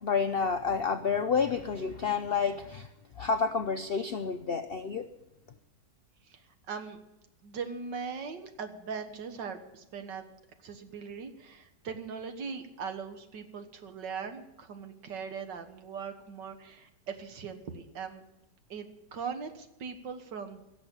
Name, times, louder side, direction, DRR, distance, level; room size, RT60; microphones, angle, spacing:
voice 1, 0.0-2.9 3.2-5.1, left 5 dB, 70° left, 8 dB, 0.5 m, -29 dB
voice 2, 6.3-7.0 7.4-10.3 10.6-18.2 18.7-20.6, right 6 dB, 85° right, 7 dB, 2.0 m, -40 dB
16.5 x 7.2 x 8.8 m, 0.89 s
omnidirectional pair, 1.9 m